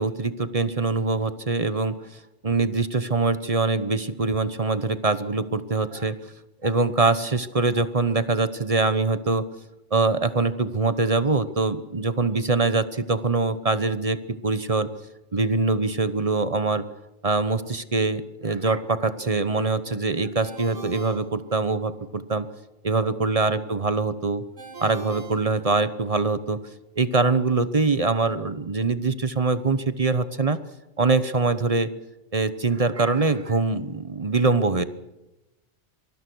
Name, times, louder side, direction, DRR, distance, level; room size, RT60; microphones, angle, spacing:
voice 1, 0.0-1.9 2.4-6.1 6.6-9.4 9.9-14.9 15.3-16.8 17.2-22.5 22.8-24.4 24.8-26.6 27.0-30.6 31.0-31.9 32.3-34.8, right 3 dB, 30° right, 13 dB, 1.0 m, -23 dB
Ringtone, 20.4-22.1 24.6-26.2, right 4 dB, 70° right, 7.1 m, -42 dB
24.5 x 20.0 x 6.3 m, 0.97 s
omnidirectional pair, 1.3 m